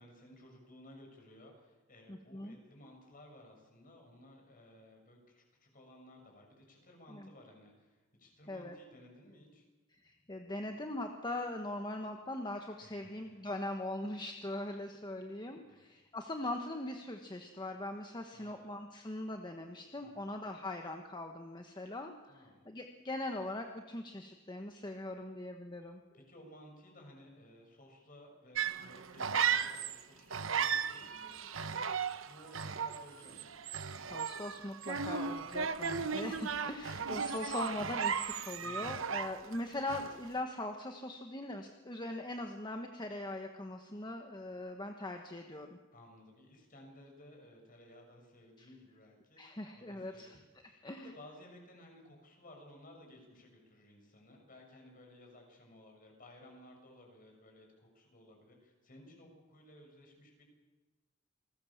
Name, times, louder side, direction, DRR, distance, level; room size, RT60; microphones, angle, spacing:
voice 1, 0.0-9.7 12.8-13.4 15.7-16.1 18.3-18.7 20.0-20.4 22.3-22.7 26.1-33.6 35.6-35.9 45.9-60.4, left 1 dB, 45° left, 2 dB, 6.7 m, -57 dB
voice 2, 2.1-2.6 7.1-7.3 8.5-8.7 10.0-26.0 34.1-45.8 48.6-48.7 49.4-50.4 50.8-51.1, left 1 dB, 20° left, 4 dB, 1.4 m, -41 dB
sound 1, 28.5-30.0 30.3-39.6 39.9-40.3, right 6 dB, 75° right, 1.1 m, -36 dB
28.0 x 20.0 x 7.3 m, 1.2 s
head